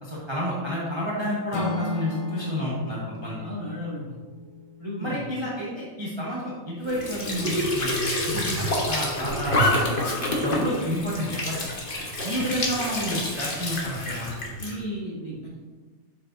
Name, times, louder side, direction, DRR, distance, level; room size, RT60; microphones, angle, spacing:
voice 1, 0.0-3.4 5.0-8.0 8.3-10.0 10.4-11.7 12.2-14.3, equal, 20° right, -6 dB, 1.0 m, -30 dB
Acoustic guitar / Strum, 1.5-5.6, left 3 dB, 75° left, 1.2 m, -35 dB
voice 2, 3.4-4.2 4.8-5.3 12.4-12.5 14.6-15.6, equal, 25° left, -8 dB, 2.1 m, -34 dB
Squeak / Sink (filling or washing) / Trickle dribble, 6.8-14.8, left 1 dB, 40° left, 1.2 m, -27 dB
7.6 x 6.3 x 2.6 m, 1.4 s
omnidirectional pair, 1.5 m